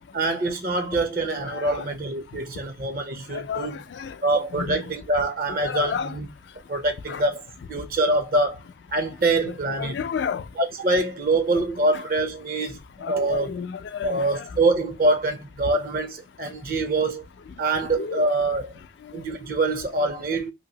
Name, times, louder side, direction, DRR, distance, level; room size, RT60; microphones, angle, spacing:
voice 1, 0.1-3.8 4.2-6.3 6.7-7.4 7.7-8.6 8.9-9.9 10.6-13.5 14.0-17.3 17.6-18.8 19.1-20.5, right 2 dB, 50° right, 0.6 m, -25 dB
voice 2, 1.5-1.9 3.3-4.1 4.5-4.8 5.6-6.1 7.1-7.2 9.5-10.4 13.0-14.4 17.9-18.2, left 6 dB, 75° left, 0.3 m, -31 dB
2.9 x 2.6 x 2.8 m
head